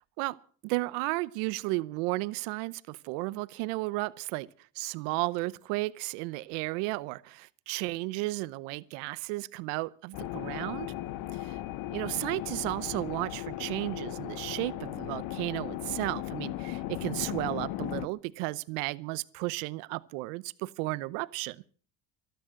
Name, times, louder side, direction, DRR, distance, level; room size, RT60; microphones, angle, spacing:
voice 1, 0.6-4.5 4.8-10.9 11.3-11.6 11.9-21.6, right 22 dB, 85° right, 0.8 m, -33 dB
sound 1, 10.1-18.1, left 14 dB, 80° left, 1.0 m, -37 dB
14.0 x 13.0 x 7.6 m
supercardioid pair, 90°, 35 cm